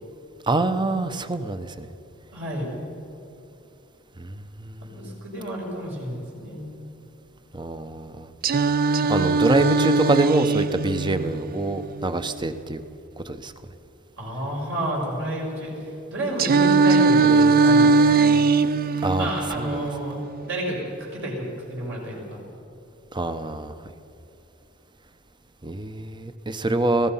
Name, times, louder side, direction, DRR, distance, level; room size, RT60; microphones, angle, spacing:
voice 1, 0.5-1.9 4.2-5.1 7.5-8.3 9.1-12.8 13.2-13.5 19.0-19.3 19.6-19.9 23.1-23.7 25.6-27.1, right 2 dB, 20° right, 10 dB, 0.9 m, -25 dB
voice 2, 2.3-2.7 4.9-6.6 14.2-18.3 19.2-20.2 20.4-22.4, right 1 dB, 65° right, -2 dB, 6.7 m, -30 dB
Singing, 8.4-12.4 16.4-20.4, right 4 dB, 45° right, 0.5 m, -20 dB
27.0 x 17.0 x 5.7 m, 2.9 s
head